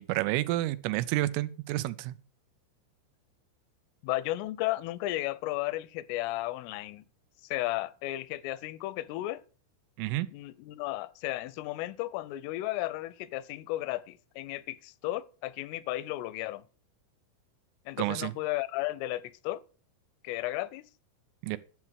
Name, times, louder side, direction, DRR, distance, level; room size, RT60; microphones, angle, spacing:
voice 1, 0.0-2.2 10.0-10.3 18.0-18.3 21.4-21.6, right 17 dB, 85° right, 3.3 m, -30 dB
voice 2, 4.0-7.1 7.5-9.4 10.3-16.6 17.9-19.6 20.2-20.9, left 16 dB, 90° left, 3.3 m, -34 dB
12.0 x 7.5 x 6.2 m
omnidirectional pair, 5.6 m